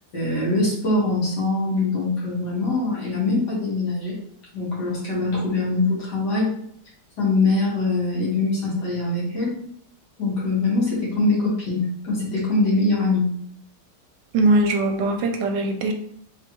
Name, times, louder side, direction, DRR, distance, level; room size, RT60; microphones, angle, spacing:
voice 1, 0.1-4.2 4.5-6.5 7.2-9.5 10.2-13.3, left 2 dB, 65° left, -6 dB, 2.2 m, -23 dB
voice 2, 14.3-15.9, right 2 dB, 75° right, 4 dB, 1.2 m, -20 dB
4.0 x 3.2 x 3.0 m, 0.65 s
omnidirectional pair, 2.0 m